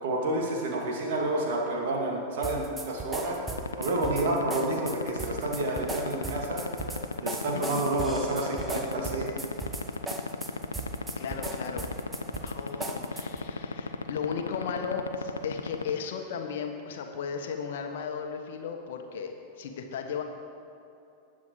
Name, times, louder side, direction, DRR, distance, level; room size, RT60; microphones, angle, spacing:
voice 1, 0.0-3.4 3.8-6.6 7.2-9.3, right 2 dB, 55° right, -1 dB, 2.5 m, -29 dB
sound 1, 2.4-13.5, right 3 dB, 15° right, 1.0 m, -38 dB
sound 2, 3.6-15.9, left 4 dB, 75° left, 0.7 m, -31 dB
voice 2, 11.2-11.9 12.4-20.2, left 6 dB, 55° left, 4 dB, 1.2 m, -35 dB
19.5 x 7.6 x 4.9 m, 2.7 s
figure-of-eight pair, 90°, 0 cm